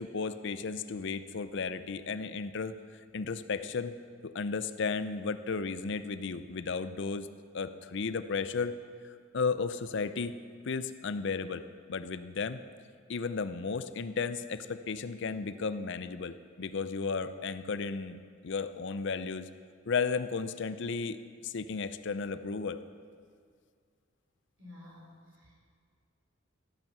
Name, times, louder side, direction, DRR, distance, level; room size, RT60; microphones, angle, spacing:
voice 1, 0.0-2.8 3.1-3.9 4.2-7.3 7.5-8.7 9.3-10.3 10.7-11.6 11.9-12.6 13.1-19.5 19.9-22.8, left 5 dB, 65° left, 12 dB, 0.6 m, -34 dB
voice 2, 24.6-25.6, left 2 dB, 80° right, -3 dB, 4.0 m, -52 dB
14.0 x 8.9 x 6.0 m, 2.1 s
head